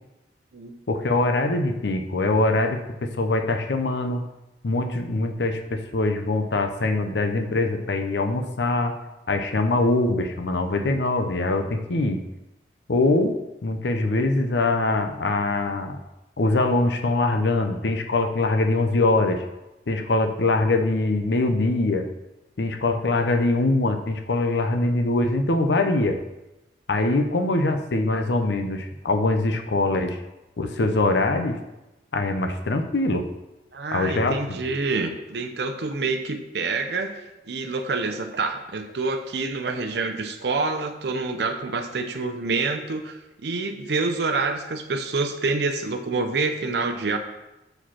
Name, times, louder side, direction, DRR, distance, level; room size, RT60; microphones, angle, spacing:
voice 1, 0.9-4.2 4.6-8.9 9.3-12.2 12.9-16.0 16.4-19.4 19.9-22.1 22.6-26.2 26.9-30.2 30.6-31.6 32.1-33.3 33.9-34.6, left 2 dB, 75° left, 6 dB, 0.6 m, -23 dB
voice 2, 33.7-37.2 37.5-47.2, right 3 dB, 65° right, 6 dB, 0.6 m, -27 dB
6.5 x 5.0 x 5.7 m, 0.98 s
head